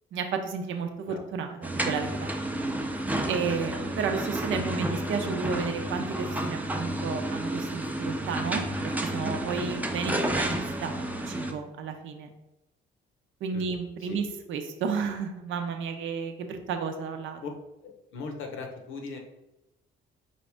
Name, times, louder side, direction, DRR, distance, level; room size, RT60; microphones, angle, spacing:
voice 1, 0.1-2.3 3.3-12.3 13.4-17.4, right 5 dB, 75° right, 5 dB, 0.7 m, -32 dB
sound 1, 1.6-11.5, right 1 dB, 10° right, 0.5 m, -31 dB
voice 2, 17.8-19.2, left 4 dB, 80° left, 3 dB, 0.8 m, -39 dB
4.7 x 2.6 x 3.4 m, 0.95 s
cardioid pair, 90°, 20 cm